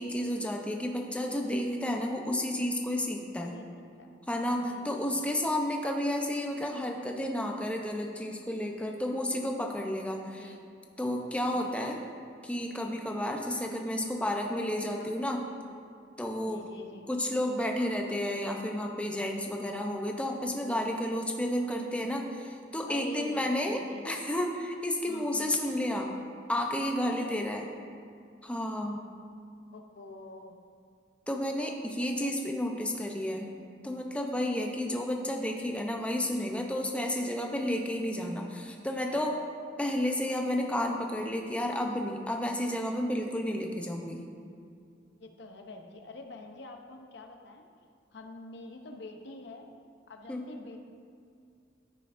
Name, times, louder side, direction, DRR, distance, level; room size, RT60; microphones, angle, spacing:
voice 1, 0.0-3.6 4.3-10.5 11.0-12.0 12.4-15.4 16.2-16.7 17.1-26.1 26.5-27.7 28.4-29.0 31.3-33.5 33.8-39.4 39.8-44.2 50.3-50.4, left 1 dB, 5° left, 2 dB, 0.6 m, -31 dB
voice 2, 4.6-5.2 10.4-10.6 11.5-11.9 15.0-15.1 16.4-17.1 22.9-24.0 25.1-25.5 27.1-27.4 29.7-30.6 32.2-32.4 45.2-47.6 48.1-49.7 50.1-50.8, left 2 dB, 65° left, 4 dB, 0.7 m, -46 dB
13.5 x 5.7 x 2.6 m, 2.3 s
head